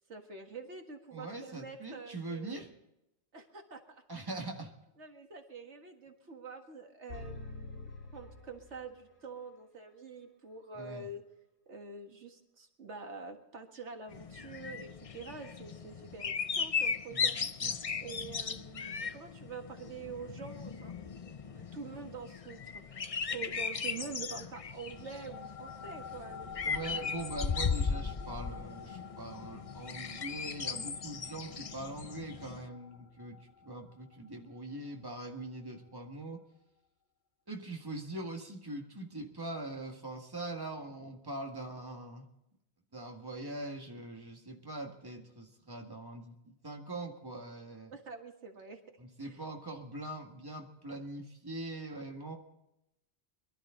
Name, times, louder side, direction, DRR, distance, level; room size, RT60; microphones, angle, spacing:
voice 1, 0.1-2.7 3.3-4.0 5.0-11.2 11.7-17.4 18.0-20.9 21.5-27.1 47.9-48.8 49.2-49.4, right 4 dB, 90° right, 4 dB, 2.1 m, -46 dB
voice 2, 1.1-2.7 4.1-4.7 10.8-11.1 17.1-17.3 17.6-17.9 26.7-36.4 37.5-42.3 42.9-47.9 49.0-52.3, right 2 dB, 20° right, 2 dB, 1.9 m, -42 dB
sound 1, 7.1-9.2, left 3 dB, 70° left, 2.7 m, -46 dB
sound 2, 14.1-32.7, left 6 dB, 40° left, 0.6 m, -37 dB
sound 3, 24.9-35.7, left 7 dB, 85° left, 2.1 m, -50 dB
22.5 x 12.5 x 3.8 m, 0.85 s
omnidirectional pair, 1.1 m